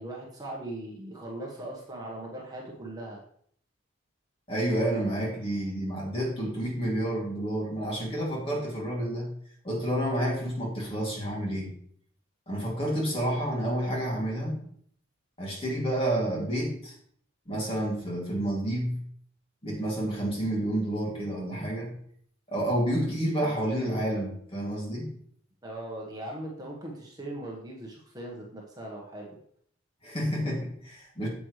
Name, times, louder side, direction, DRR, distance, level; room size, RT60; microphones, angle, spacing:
voice 1, 0.0-3.2 25.6-29.4, right 1 dB, 20° right, -2 dB, 1.4 m, -39 dB
voice 2, 4.5-9.3 9.6-11.7 12.5-14.6 15.4-16.9 17.5-19.0 19.6-21.9 22.5-25.1 30.0-31.3, right 1 dB, 30° left, -2 dB, 2.7 m, -29 dB
8.9 x 7.9 x 3.3 m, 0.62 s
head